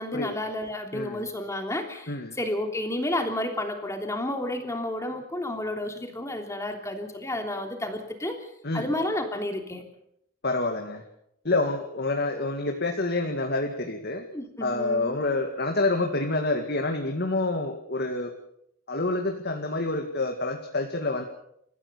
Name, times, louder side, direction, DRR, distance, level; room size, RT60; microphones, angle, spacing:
voice 1, 0.0-8.4 8.7-9.8 14.3-15.2, left 1 dB, 15° left, 4 dB, 3.2 m, -31 dB
voice 2, 0.9-1.3 2.1-2.4 8.6-8.9 10.4-11.0 11.4-14.2 14.6-18.3 18.9-21.2, left 2 dB, 50° left, 3 dB, 2.2 m, -27 dB
28.5 x 15.5 x 6.9 m, 0.75 s
head